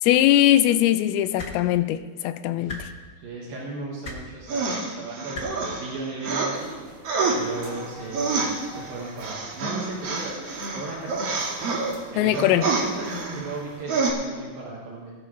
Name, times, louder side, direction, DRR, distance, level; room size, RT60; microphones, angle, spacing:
voice 1, 0.0-2.9 12.2-12.6, left 13 dB, 85° left, 12 dB, 2.5 m, -20 dB
sound 1, 1.4-1.5 2.7-2.8 4.0-4.2 5.3-5.5 6.7-6.8, left 2 dB, 60° left, 0.8 m, -35 dB
voice 2, 2.5-2.9 3.2-6.8 7.3-11.3 12.1-15.1, right 3 dB, 70° right, -4 dB, 3.2 m, -36 dB
sound 2, 4.5-6.6 7.0-11.9 12.3-13.6 13.9-14.1, right 4 dB, 50° right, 2.3 m, -27 dB
sound 3, 6.5-13.8, right 1 dB, 35° right, 2.4 m, -45 dB
20.0 x 11.0 x 3.2 m, 1.4 s
omnidirectional pair, 4.4 m